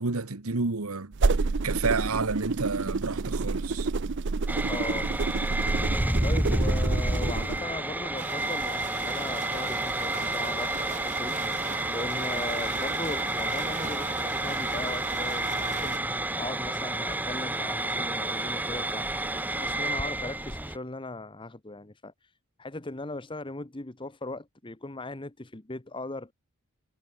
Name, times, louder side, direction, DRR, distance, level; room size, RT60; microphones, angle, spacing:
voice 1, 0.0-3.9, right 4 dB, 80° right, 1.3 m, -30 dB
sound 1, 1.1-7.6, right 3 dB, 55° right, 0.6 m, -28 dB
sound 2, 4.5-20.8, right 1 dB, 10° right, 1.5 m, -30 dB
voice 2, 4.7-5.1 6.2-22.3 22.6-26.3, left 2 dB, 20° left, 1.0 m, -38 dB
sound 3, 8.2-16.0, right 5 dB, 35° right, 2.2 m, -39 dB
head